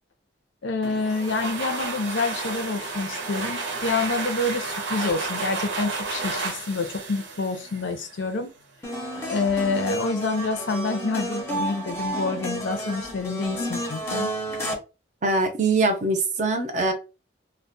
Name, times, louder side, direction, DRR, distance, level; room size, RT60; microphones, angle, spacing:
voice 1, 0.6-8.5 9.3-14.3, left 3 dB, 80° left, 7 dB, 0.6 m, -27 dB
sound 1, 0.8-8.3, right 3 dB, 80° right, 0.6 m, -32 dB
sound 2, 8.8-14.7, right 1 dB, 15° left, 0.6 m, -31 dB
voice 2, 15.2-16.9, right 3 dB, 40° right, 5 dB, 0.5 m, -22 dB
2.3 x 2.1 x 2.6 m, 0.30 s
head